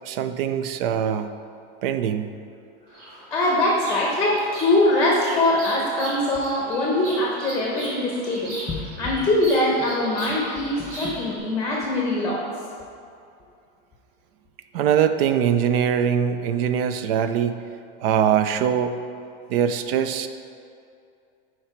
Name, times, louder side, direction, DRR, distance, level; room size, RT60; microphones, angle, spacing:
voice 1, 0.0-1.3 1.8-2.3 14.7-17.6 18.0-19.0 19.5-20.3, right 8 dB, 65° right, 9 dB, 0.6 m, -22 dB
Bird vocalization bird call bird song, 2.9-11.4, right 1 dB, 45° right, 2.0 m, -38 dB
voice 2, 3.3-12.4, left 1 dB, 10° left, -3 dB, 0.8 m, -22 dB
10.5 x 4.5 x 4.5 m, 2.5 s
supercardioid pair, 175°, 31 cm